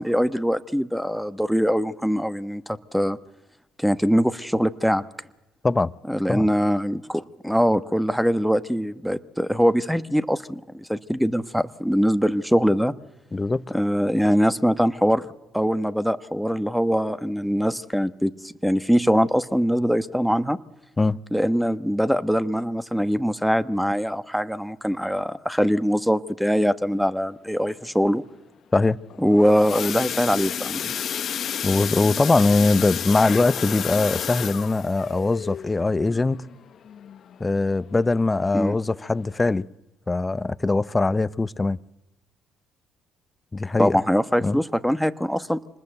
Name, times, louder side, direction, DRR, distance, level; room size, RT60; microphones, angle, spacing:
voice 1, 0.0-3.2 3.8-5.0 6.1-12.9 13.7-15.3 15.5-18.3 18.6-20.6 21.3-28.2 29.2-30.9 38.5-38.8 43.8-45.6, equal, ahead, 1.3 m, -22 dB
voice 2, 13.3-13.7 21.0-21.2 28.7-29.0 31.6-36.5 37.4-39.7 40.1-41.8 43.5-44.0 44.4-44.6, left 3 dB, 20° left, 0.7 m, -22 dB
sound 1, 29.1-37.8 38.2-38.4 38.7-38.8 39.3-39.4, left 8 dB, 55° left, 1.1 m, -31 dB
26.0 x 20.0 x 7.9 m
hypercardioid pair, 60°, 0 cm